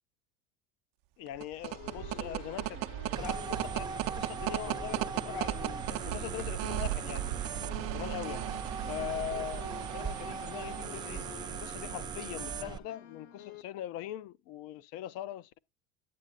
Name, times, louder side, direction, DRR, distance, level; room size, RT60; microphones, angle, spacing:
voice 1, 1.2-7.3 7.9-8.4 8.9-11.2 11.6-15.6, left 12 dB, 50° left, 0.5 m, -41 dB
sound 1, 1.3-12.0, right 14 dB, 55° right, 0.7 m, -37 dB
sound 2, 1.6-13.6, left 10 dB, 90° left, 1.5 m, -50 dB
sound 3, 3.1-12.8, right 6 dB, 15° right, 0.3 m, -40 dB
8.9 x 8.5 x 2.4 m
supercardioid pair, 135°, 31 cm